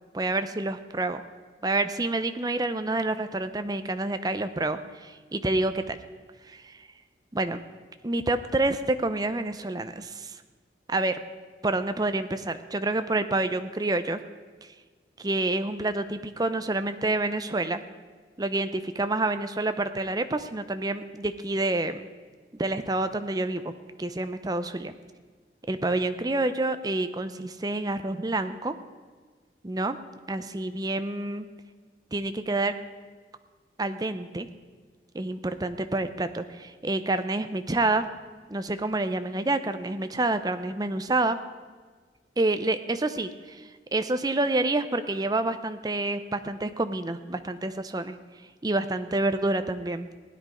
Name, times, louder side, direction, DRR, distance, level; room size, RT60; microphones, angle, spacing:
voice 1, 0.1-1.2 1.6-6.0 6.5-6.9 7.3-7.6 8.0-10.4 10.9-11.2 11.6-14.2 15.2-17.8 18.4-22.0 22.5-23.7 24.0-24.9 25.7-28.7 29.6-30.0 30.3-31.5 32.1-32.7 33.8-34.5 35.1-38.1 38.5-41.4 42.4-48.1 48.6-50.1, right 2 dB, 20° right, 10 dB, 0.6 m, -28 dB
16.5 x 9.9 x 5.0 m, 1.5 s
head